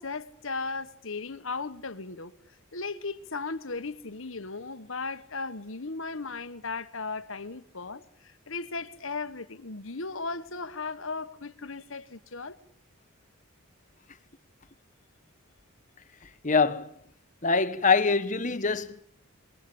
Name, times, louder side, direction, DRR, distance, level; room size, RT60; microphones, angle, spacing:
voice 1, 0.0-2.3 2.7-12.6, left 3 dB, 65° left, 1.4 m, -36 dB
voice 2, 16.4-16.9 17.4-19.0, left 4 dB, 35° left, 1.2 m, -24 dB
27.0 x 22.5 x 8.7 m
head